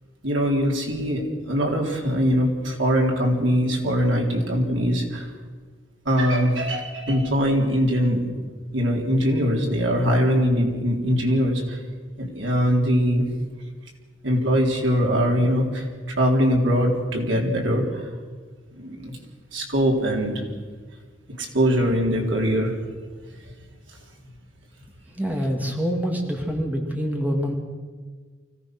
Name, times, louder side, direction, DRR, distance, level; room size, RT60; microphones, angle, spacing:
voice 1, 0.2-5.3 6.1-8.3 8.7-11.8 12.2-13.3 14.2-15.9 16.2-18.1 18.7-19.2 19.5-20.4 21.3-22.7, equal, 80° right, 0 dB, 3.8 m, -22 dB
voice 2, 25.2-27.5, equal, 10° right, 1 dB, 2.4 m, -25 dB
25.0 x 16.5 x 6.2 m, 1.5 s
head